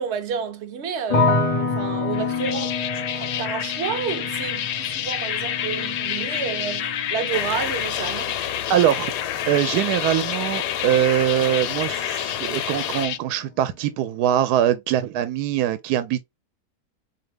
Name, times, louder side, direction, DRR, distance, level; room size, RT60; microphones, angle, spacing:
voice 1, 0.0-8.4, right 7 dB, 55° right, 0.8 m, -30 dB
sound 1, 1.1-12.2 12.4-13.2, left 3 dB, 35° left, 0.6 m, -29 dB
sound 2, 2.1-13.2, left 10 dB, 70° left, 0.8 m, -29 dB
sound 3, 7.3-13.1, left 11 dB, 85° left, 1.2 m, -31 dB
voice 2, 8.7-16.2, right 11 dB, 80° right, 1.1 m, -22 dB
4.0 x 2.8 x 3.3 m
omnidirectional pair, 1.7 m